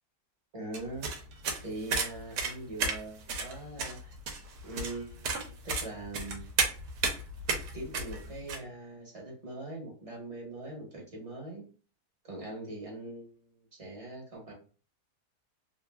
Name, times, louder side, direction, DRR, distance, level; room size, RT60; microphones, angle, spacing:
voice 1, 0.5-1.2 1.6-4.1 4.6-6.5 7.7-11.6 12.2-14.5, right 2 dB, 30° right, -1 dB, 0.7 m, -42 dB
sound 1, 0.7-8.6, right 4 dB, 80° right, 1.2 m, -33 dB
3.1 x 2.4 x 2.2 m, 0.37 s
omnidirectional pair, 1.8 m